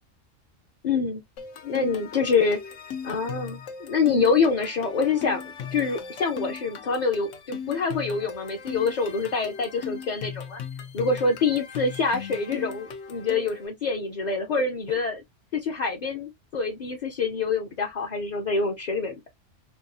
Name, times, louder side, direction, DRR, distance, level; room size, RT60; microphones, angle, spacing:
voice 1, 0.8-1.2 1.6-2.6 3.0-10.6 10.9-15.2 15.5-19.3, left 4 dB, 45° left, 0.6 m, -26 dB
sound 1, 1.4-13.7, left 7 dB, 90° left, 1.1 m, -38 dB
4.6 x 2.3 x 2.6 m
omnidirectional pair, 1.3 m